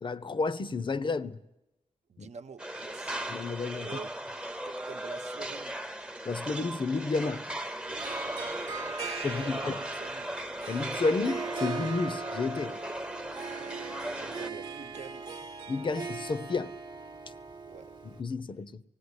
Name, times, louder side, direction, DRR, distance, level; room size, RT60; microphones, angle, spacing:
voice 1, 0.0-1.4 2.2-2.3 3.3-3.9 6.3-7.4 9.2-9.8 10.7-12.7 15.7-16.7 18.2-18.8, left 4 dB, 45° left, 0.6 m, -31 dB
voice 2, 2.1-3.2 3.8-4.1 4.6-5.7 8.7-10.3 13.6-13.9 14.2-15.2 17.7-17.9, right 6 dB, 70° right, 0.9 m, -47 dB
sound 1, 2.6-14.5, right 1 dB, 10° right, 0.7 m, -38 dB
Harp, 7.9-18.2, right 4 dB, 35° right, 1.0 m, -39 dB
18.0 x 17.5 x 9.7 m
wide cardioid pair, 160°, 12 cm